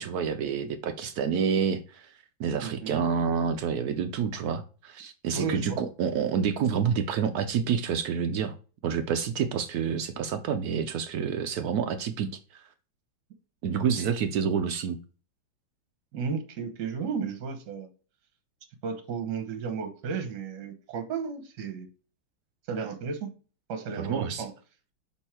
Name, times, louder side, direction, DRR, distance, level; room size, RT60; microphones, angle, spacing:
voice 1, 0.0-8.6 8.8-12.7 13.6-15.0 24.0-24.4, right 7 dB, 80° right, 0.8 m, -28 dB
voice 2, 2.6-3.0 5.3-5.8 16.1-17.9 18.8-21.9 22.7-23.3 23.7-24.5, right 5 dB, 60° right, 1.5 m, -33 dB
6.3 x 3.6 x 4.3 m
omnidirectional pair, 2.2 m